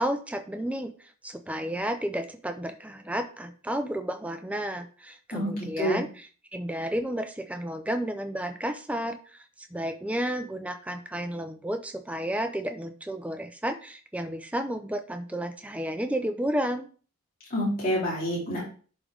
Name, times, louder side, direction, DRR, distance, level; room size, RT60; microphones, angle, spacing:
voice 1, 0.0-6.3 6.5-16.9, right 1 dB, 5° right, 7 dB, 0.5 m, -32 dB
voice 2, 5.3-6.0 17.5-18.6, equal, 40° left, -7 dB, 3.2 m, -28 dB
11.0 x 3.7 x 3.5 m, 0.40 s
head